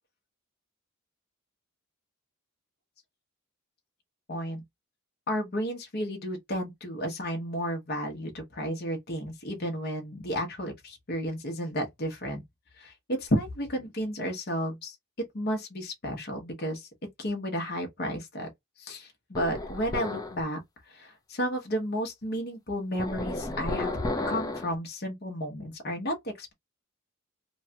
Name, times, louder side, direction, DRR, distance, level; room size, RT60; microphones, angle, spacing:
voice 1, 4.3-4.6 5.3-12.4 12.8-15.0 15.3-16.9 17.2-18.5 18.8-20.6 20.9-24.0 24.3-26.5, equal, 45° left, 0.9 m, -32 dB
sound 1, 19.3-20.4 23.0-24.7, left 2 dB, 15° left, 0.6 m, -32 dB
3.1 x 2.2 x 2.7 m
head